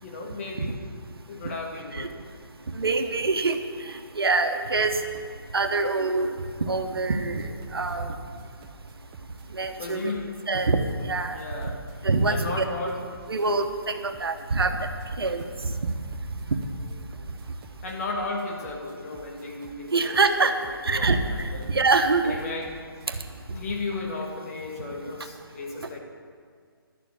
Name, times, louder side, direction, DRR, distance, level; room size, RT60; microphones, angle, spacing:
voice 1, 0.0-0.8 1.3-2.1 9.8-10.3 11.3-11.8 12.3-13.0 17.8-20.2 20.9-21.8 22.2-22.7 23.5-26.0, left 3 dB, 40° left, 1 dB, 1.9 m, -34 dB
voice 2, 2.7-4.9 5.5-6.3 6.6-8.1 9.5-10.1 10.5-11.4 12.0-12.6 13.3-14.8 15.2-15.4 19.9-20.5 20.8-22.4 23.1-23.2, right 3 dB, 80° right, 6 dB, 1.2 m, -25 dB
sound 1, 7.1-23.4, right 4 dB, 20° right, 0.6 m, -51 dB
11.5 x 7.0 x 8.5 m, 2.1 s
hypercardioid pair, 155°, 12 cm